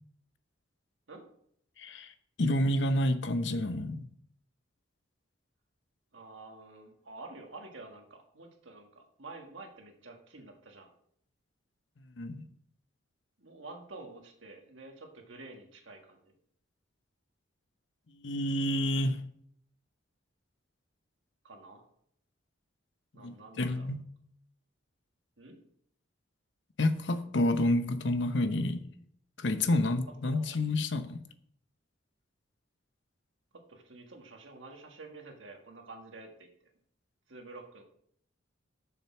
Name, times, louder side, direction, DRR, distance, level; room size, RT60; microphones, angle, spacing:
voice 1, 1.8-2.1 2.4-4.1 12.2-12.4 18.2-19.2 23.2-24.0 26.8-28.8 29.4-31.2, left 1 dB, 60° left, 0.8 m, -29 dB
voice 2, 6.1-10.9 13.4-16.3 21.4-21.8 23.1-23.9 25.4-25.6 30.2-30.5 33.5-36.5 37.3-37.8, right 3 dB, 70° right, 1.7 m, -49 dB
7.3 x 6.8 x 6.1 m
head